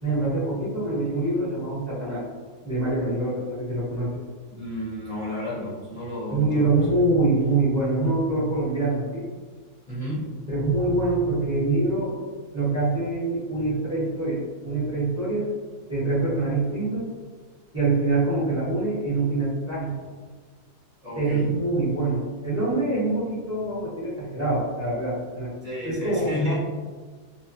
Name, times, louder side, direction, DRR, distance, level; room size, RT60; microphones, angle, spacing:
voice 1, 0.0-2.2 2.6-4.2 6.3-9.3 10.5-12.1 12.5-15.5 15.9-17.1 17.7-19.9 21.2-25.5 25.8-26.6, right 2 dB, 15° right, -8 dB, 0.6 m, -25 dB
voice 2, 4.5-6.6 9.9-10.3 21.0-21.5 25.6-26.6, left 1 dB, 35° left, -10 dB, 0.6 m, -31 dB
3.1 x 2.1 x 2.6 m, 1.4 s
omnidirectional pair, 1.7 m